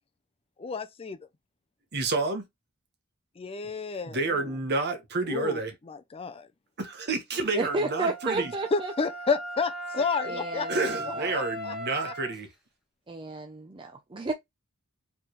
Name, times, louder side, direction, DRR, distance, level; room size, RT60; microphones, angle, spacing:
voice 1, 0.6-1.2 3.4-4.6 5.3-5.6 5.9-6.5 8.7-10.7 11.3-11.8 12.0-12.1, left 4 dB, 25° left, 0.5 m, -31 dB
voice 2, 1.9-2.4 4.1-5.7 6.8-8.5 10.7-12.5, right 3 dB, 50° right, 1.2 m, -29 dB
voice 3, 7.5-8.9 10.2-10.8 11.1-11.3 13.1-14.3, right 2 dB, 25° right, 0.5 m, -32 dB
Wind instrument woodwind instrument, 7.7-12.4, right 1 dB, 5° right, 1.7 m, -37 dB
4.9 x 3.4 x 3.1 m
head